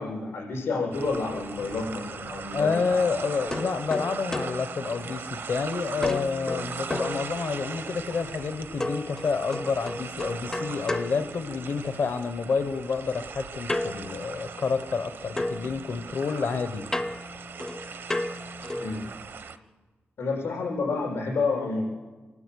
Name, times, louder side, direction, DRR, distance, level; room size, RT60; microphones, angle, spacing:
voice 1, 0.0-3.0 18.7-19.0 20.2-21.8, left 3 dB, 80° left, -1 dB, 7.4 m, -29 dB
sound 1, 0.9-19.6, right 5 dB, 65° right, 0.9 m, -39 dB
voice 2, 2.5-16.8, left 5 dB, 60° left, 11 dB, 1.0 m, -29 dB
sound 2, 3.5-5.6 6.0-7.9 8.8-12.0 13.7-15.1 15.4-19.0, left 1 dB, 15° left, 0.6 m, -34 dB
26.5 x 12.0 x 8.3 m, 1.3 s
wide cardioid pair, 145°, 4 cm